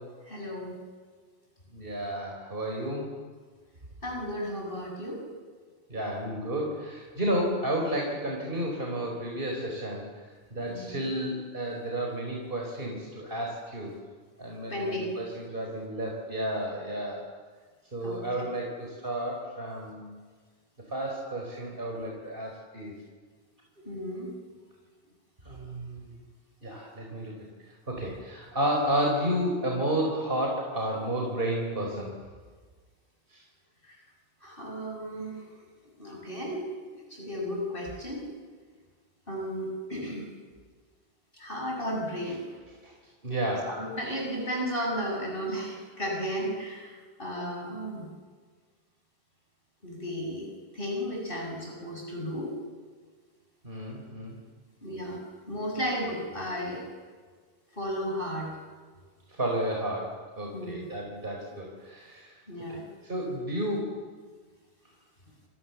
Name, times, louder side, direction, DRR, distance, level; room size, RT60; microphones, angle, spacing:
voice 1, 0.3-0.8 4.0-5.2 10.7-11.0 14.7-15.2 18.0-18.4 23.8-24.3 33.8-34.0 34.4-35.5 36.0-38.3 39.3-40.3 41.3-42.4 43.7-48.1 49.8-50.5 50.7-52.6 54.8-55.2 55.5-56.8 57.7-58.5 60.5-60.8 62.5-62.8, equal, 55° left, 0 dB, 7.6 m, -34 dB
voice 2, 1.7-3.1 5.9-10.1 10.5-13.9 14.4-17.3 17.9-20.1 20.9-22.9 25.4-26.1 26.6-27.3 27.9-32.1 33.3-33.4 42.8-42.9 43.2-43.7 53.6-54.4 59.3-62.4 62.7-64.0, right 1 dB, 60° right, 0 dB, 4.8 m, -32 dB
29.5 x 28.0 x 7.2 m, 1.5 s
omnidirectional pair, 1.1 m